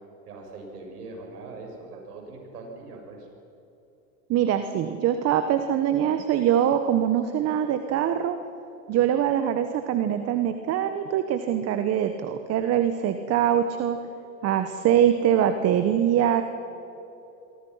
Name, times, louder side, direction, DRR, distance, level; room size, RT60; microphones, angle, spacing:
voice 1, 0.2-3.3, right 3 dB, 80° right, 1 dB, 7.5 m, -41 dB
voice 2, 4.3-8.4 8.9-14.0 14.4-16.4, right 10 dB, 35° right, 8 dB, 1.3 m, -23 dB
27.5 x 24.0 x 5.8 m, 2.9 s
hypercardioid pair, 125°, 46 cm